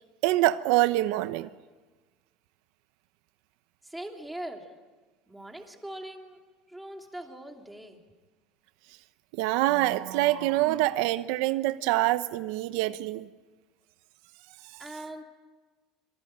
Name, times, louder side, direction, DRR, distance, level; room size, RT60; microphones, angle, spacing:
voice 1, 0.2-1.5 9.4-13.3, right 16 dB, 80° right, 0.8 m, -25 dB
voice 2, 3.8-4.7 5.3-6.4 6.7-8.0 14.8-15.2, right 1 dB, 5° right, 3.0 m, -41 dB
26.5 x 24.0 x 8.8 m
cardioid pair, 150°, 0 cm